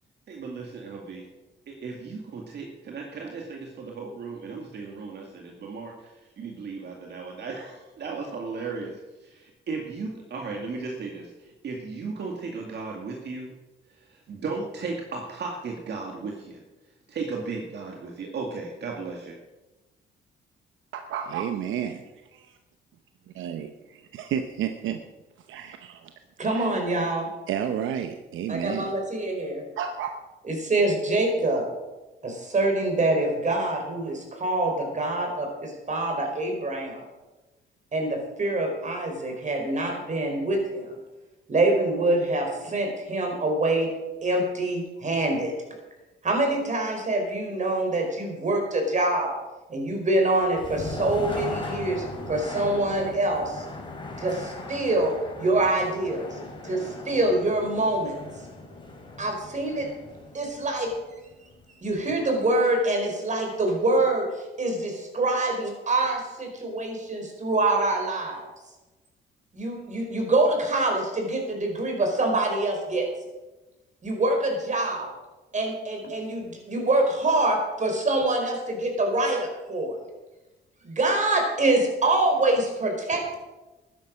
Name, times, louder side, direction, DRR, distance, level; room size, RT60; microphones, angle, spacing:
voice 1, 0.3-1.3 1.7-13.6 13.9-16.6 17.1-19.4, right 4 dB, 60° right, 0 dB, 2.2 m, -36 dB
voice 2, 20.9-22.0 23.3-25.0 25.5-26.1 26.5-26.7 27.5-28.9 29.8-30.2, right 8 dB, 80° right, 7 dB, 0.9 m, -31 dB
voice 3, 26.4-27.3 28.5-29.6 30.4-31.6 32.2-37.0 37.9-40.9 41.5-43.9 44.2-45.5 46.2-49.3 49.7-53.6 54.2-56.4 56.6-58.2 59.2-59.9 60.3-60.9 61.8-68.5 69.5-73.1 74.0-75.1 75.5-79.9 80.8-83.3, right 2 dB, 40° right, 2 dB, 4.8 m, -25 dB
sound 1, 50.3-62.2, left 2 dB, 25° left, 3.7 m, -39 dB
12.5 x 10.5 x 6.4 m, 1.1 s
cardioid pair, 90°, 20 cm